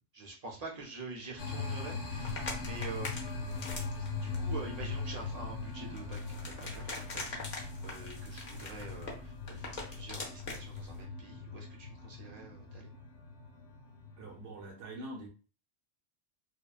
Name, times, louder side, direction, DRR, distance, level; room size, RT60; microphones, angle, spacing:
voice 1, 0.1-3.7 4.2-6.2 6.5-12.9, right 3 dB, 40° right, 0.7 m, -46 dB
sound 1, 1.4-14.7, left 4 dB, 75° left, 1.0 m, -41 dB
sound 2, 2.1-11.0, left 3 dB, 45° left, 0.7 m, -43 dB
voice 2, 14.2-15.3, right 1 dB, 75° right, 1.1 m, -44 dB
2.7 x 2.1 x 2.3 m
omnidirectional pair, 1.2 m